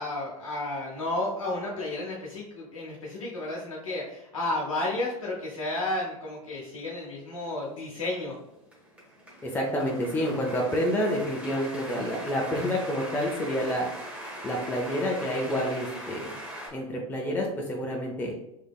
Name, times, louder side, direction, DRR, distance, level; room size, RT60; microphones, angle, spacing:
voice 1, 0.0-8.3, left 2 dB, 75° left, -4 dB, 0.7 m, -32 dB
sound 1, 7.4-16.7, right 1 dB, 10° right, 1.0 m, -41 dB
voice 2, 9.4-13.9 14.4-16.4 16.7-18.3, equal, 10° left, -1 dB, 0.6 m, -28 dB
3.3 x 3.2 x 2.2 m, 0.83 s
figure-of-eight pair, 80°, 17 cm